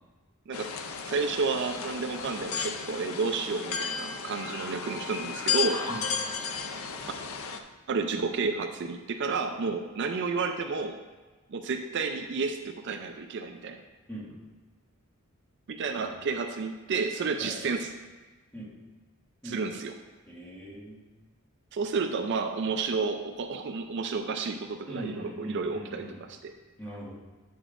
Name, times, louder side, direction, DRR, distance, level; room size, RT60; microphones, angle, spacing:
sound 1, 0.5-7.6, left 6 dB, 75° left, 0.5 m, -34 dB
voice 1, 1.1-5.8 7.9-11.0 11.5-13.8 15.7-17.9 19.4-19.9 21.7-26.5, right 4 dB, 55° right, 5 dB, 0.4 m, -31 dB
voice 2, 20.3-21.0 24.8-26.2 26.8-27.1, right 1 dB, 10° left, -5 dB, 1.6 m, -41 dB
8.7 x 6.9 x 2.5 m, 1.3 s
head